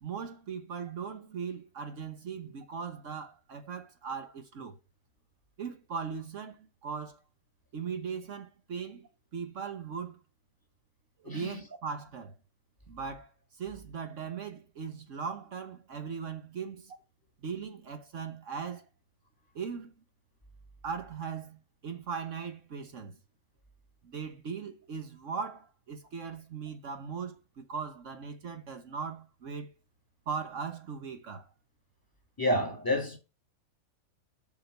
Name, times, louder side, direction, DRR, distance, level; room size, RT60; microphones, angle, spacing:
voice 1, 0.0-4.8 5.6-7.2 7.7-10.2 11.2-12.3 12.9-16.9 17.4-18.9 19.5-19.9 20.8-23.2 24.0-29.7 30.3-31.5, right 6 dB, 60° right, 1.3 m, -39 dB
voice 2, 11.2-11.6 32.4-33.2, left 1 dB, 15° left, 2.1 m, -29 dB
7.3 x 6.0 x 6.6 m
omnidirectional pair, 1.5 m